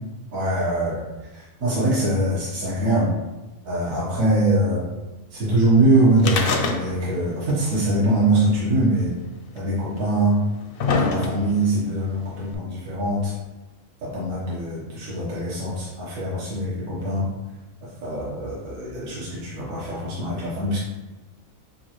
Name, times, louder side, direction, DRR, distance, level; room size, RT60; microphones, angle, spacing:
voice 1, 0.3-1.0 1.3-3.1 3.6-4.9 5.3-9.1 9.5-10.4 10.9-13.4 14.0-17.3 17.8-20.8, right 1 dB, 75° right, -8 dB, 1.5 m, -23 dB
sound 1, 6.2-7.2 7.5-7.6 8.6-8.7 9.6-9.7 10.3-11.7 12.5-12.6, left 4 dB, 60° left, 0.6 m, -24 dB
7.0 x 2.4 x 2.9 m, 1.1 s
omnidirectional pair, 1.5 m